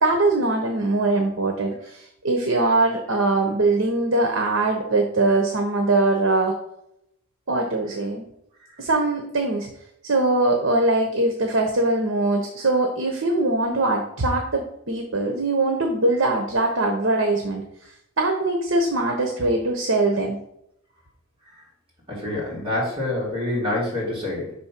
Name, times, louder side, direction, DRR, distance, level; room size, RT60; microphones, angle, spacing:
voice 1, 0.0-6.5 7.5-8.3 8.8-9.7 10.0-17.6 18.2-20.4, right 2 dB, 70° right, 3 dB, 0.9 m, -22 dB
voice 2, 22.1-24.5, left 1 dB, 25° right, -6 dB, 2.8 m, -26 dB
5.3 x 4.3 x 5.8 m, 0.77 s
head